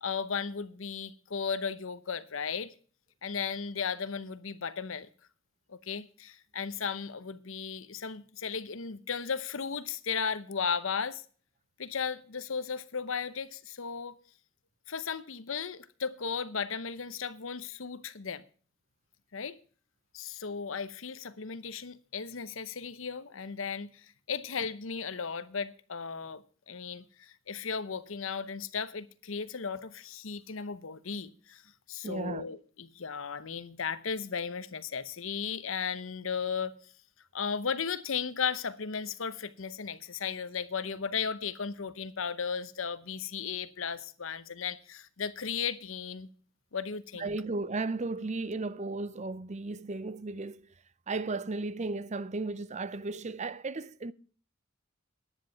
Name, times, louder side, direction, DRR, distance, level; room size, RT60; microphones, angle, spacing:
voice 1, 0.0-2.7 3.2-5.1 5.7-11.2 11.8-14.2 14.9-18.4 19.3-19.5 20.1-31.6 31.9-36.7 37.3-46.3 46.7-47.3, left 6 dB, 70° left, 0.8 m, -35 dB
voice 2, 32.0-32.4 47.2-50.7 51.1-54.1, right 3 dB, 35° right, 0.6 m, -35 dB
10.5 x 9.9 x 5.7 m
head